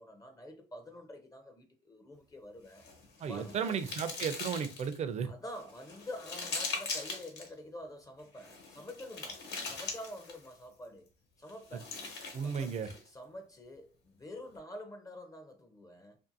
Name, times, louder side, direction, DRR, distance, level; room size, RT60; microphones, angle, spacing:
voice 1, 0.0-2.9 3.2-3.8 5.2-11.1 11.4-11.9 12.4-16.2, left 1 dB, 20° left, 0.4 m, -47 dB
sound 1, 2.7-5.0 5.5-7.5 8.4-10.5 11.5-13.1, left 3 dB, 75° left, 1.1 m, -41 dB
voice 2, 3.2-5.3 12.3-12.9, right 7 dB, 40° right, 0.4 m, -34 dB
2.6 x 2.5 x 2.5 m
cardioid pair, 110°, 17 cm